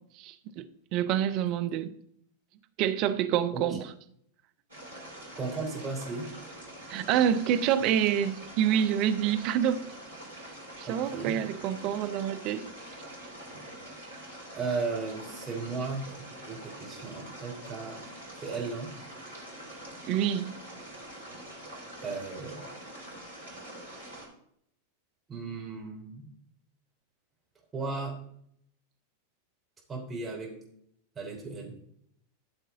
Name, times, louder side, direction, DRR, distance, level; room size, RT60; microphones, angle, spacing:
voice 1, 0.2-0.7 0.9-1.9 2.8-3.9 6.9-9.9 10.8-12.6 20.1-20.5, right 9 dB, 40° right, 0.8 m, -27 dB
sound 1, 4.7-24.3, right 1 dB, 80° right, 3.9 m, -45 dB
voice 2, 5.4-6.3 10.8-11.3 14.5-16.0 16.5-18.0 18.4-18.9 22.0-22.6 25.3-26.3 27.7-28.1 29.9-30.5 31.2-31.7, right 4 dB, 15° right, 3.3 m, -35 dB
13.5 x 6.8 x 3.7 m
figure-of-eight pair, 90°, 0 cm